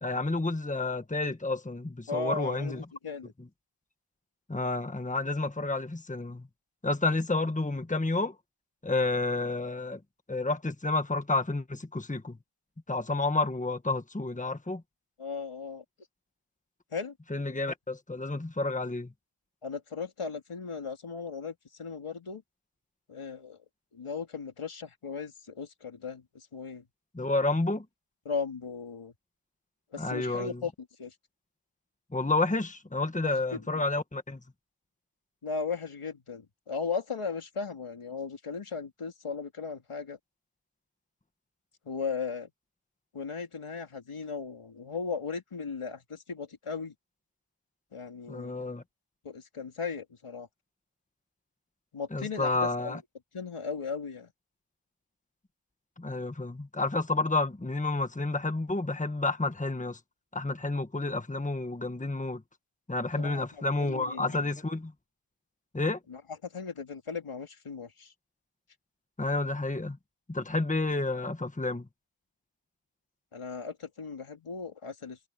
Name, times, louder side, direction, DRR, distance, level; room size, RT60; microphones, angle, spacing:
voice 1, 0.0-2.8 4.5-6.5 6.8-8.3 8.8-10.0 10.3-12.4 12.9-14.8 17.3-19.1 27.1-27.8 30.0-30.6 32.1-34.4 48.3-48.8 52.1-53.0 56.0-60.0 60.3-62.4 62.9-64.9 65.7-66.0 69.2-70.0 70.3-71.8, left 2 dB, 15° left, 1.4 m, -30 dB
voice 2, 2.1-3.3 15.2-15.8 16.9-17.1 19.6-22.4 23.1-23.6 23.9-26.9 28.2-29.1 29.9-30.7 31.0-31.1 33.2-33.8 35.4-40.2 41.8-42.5 43.1-46.9 47.9-48.7 49.2-50.5 51.9-53.0 53.3-54.3 63.2-63.5 63.8-64.5 66.1-68.1 73.3-75.2, left 5 dB, 85° left, 3.1 m, -37 dB
wide cardioid pair, 95°, 49 cm